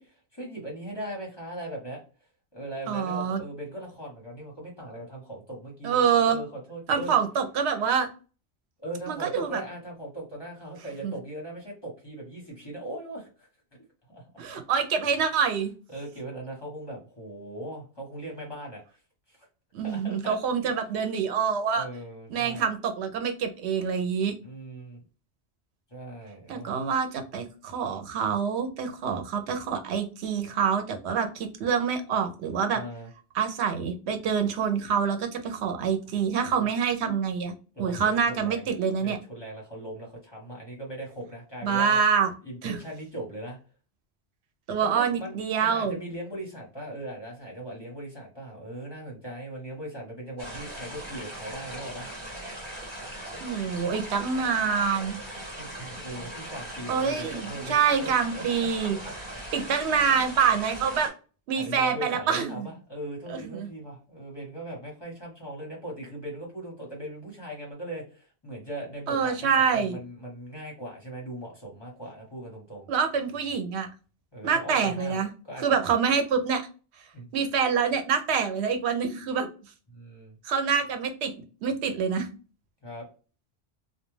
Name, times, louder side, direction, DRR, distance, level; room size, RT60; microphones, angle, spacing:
voice 1, 0.0-2.0 2.5-7.1 8.8-13.5 14.1-14.6 15.9-18.8 19.3-19.5 19.8-20.4 21.8-22.7 24.4-25.0 25.9-26.8 32.7-33.1 36.2-36.7 37.7-38.7 39.0-42.0 42.4-43.6 44.8-52.1 55.6-58.4 58.8-59.1 59.6-59.9 60.5-60.9 61.5-72.9 74.3-75.8 77.1-77.3 79.9-80.3 82.8-83.1, right 1 dB, 25° left, -3 dB, 1.0 m, -39 dB
voice 2, 2.9-3.4 5.8-6.4 6.9-8.1 9.1-9.6 11.0-11.1 14.4-15.7 19.7-21.9 22.3-24.3 26.5-32.8 33.3-37.5 37.8-39.2 41.6-42.3 42.6-42.8 44.7-46.0 53.4-55.2 56.9-59.0 59.5-61.1 61.5-62.7 63.3-63.7 69.1-70.0 72.9-73.9 74.4-75.3 75.6-76.6 77.3-79.5 80.4-82.3, right 6 dB, 85° right, 6 dB, 0.9 m, -26 dB
sound 1, 50.4-61.1, right 1 dB, 30° right, 1.2 m, -39 dB
2.3 x 2.2 x 3.0 m, 0.35 s
omnidirectional pair, 1.1 m